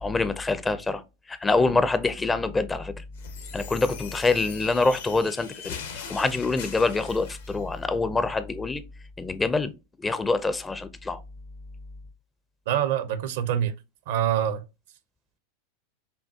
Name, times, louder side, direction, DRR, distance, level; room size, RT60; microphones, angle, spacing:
voice 1, 0.0-3.0 3.5-8.8 9.2-9.7 10.0-11.2, left 3 dB, 15° left, 0.4 m, -25 dB
sound 1, 3.2-7.6, left 6 dB, 65° left, 0.8 m, -41 dB
voice 2, 12.7-13.7 14.1-14.6, right 10 dB, 60° right, 0.5 m, -25 dB
5.5 x 2.3 x 2.6 m
figure-of-eight pair, 85°, 0 cm